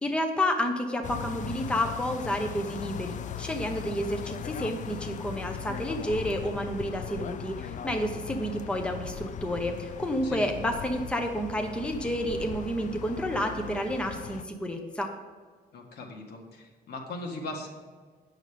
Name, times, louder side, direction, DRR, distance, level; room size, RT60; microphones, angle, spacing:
voice 1, 0.0-15.1, equal, 5° left, 3 dB, 0.8 m, -30 dB
sound 1, 1.0-14.4, left 9 dB, 50° left, 0.4 m, -38 dB
voice 2, 15.7-17.7, left 2 dB, 75° left, 1 dB, 1.7 m, -39 dB
9.2 x 6.6 x 5.0 m, 1.5 s
cardioid pair, 150°, 17 cm